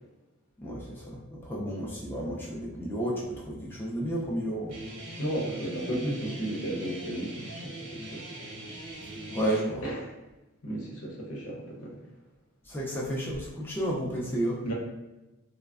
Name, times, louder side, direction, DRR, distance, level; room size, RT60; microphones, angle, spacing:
voice 1, 0.6-4.8 9.3-9.9 12.6-14.6, right 1 dB, 10° left, -5 dB, 0.3 m, -32 dB
Guitar, 4.7-9.6, right 1 dB, 75° right, 0.8 m, -41 dB
voice 2, 5.2-8.2 9.8-9.9 10.6-12.0 14.6-14.7, right 1 dB, 75° left, -2 dB, 0.8 m, -34 dB
3.2 x 2.1 x 2.4 m, 1.0 s
head